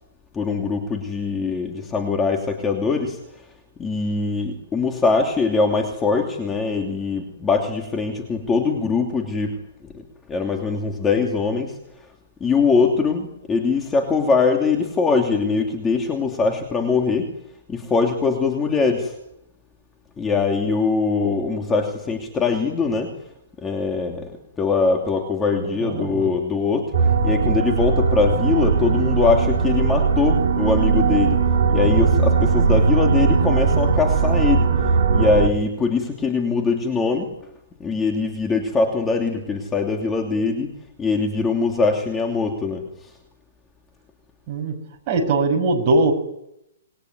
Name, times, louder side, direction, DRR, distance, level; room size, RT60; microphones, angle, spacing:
voice 1, 0.3-3.5 3.8-10.0 10.3-12.1 12.4-17.3 17.7-19.1 20.2-23.1 23.6-24.3 24.6-31.4 31.7-34.7 35.1-37.3 37.8-40.7 41.0-43.1, left 4 dB, 10° left, 2 dB, 2.9 m, -22 dB
voice 2, 25.8-26.3 44.5-44.7 45.1-46.1, right 2 dB, 30° right, 3 dB, 6.8 m, -20 dB
sound 1, 26.9-35.5, right 5 dB, 55° right, 3.9 m, -19 dB
27.5 x 21.5 x 9.5 m, 0.85 s
hypercardioid pair, 160°, 0 cm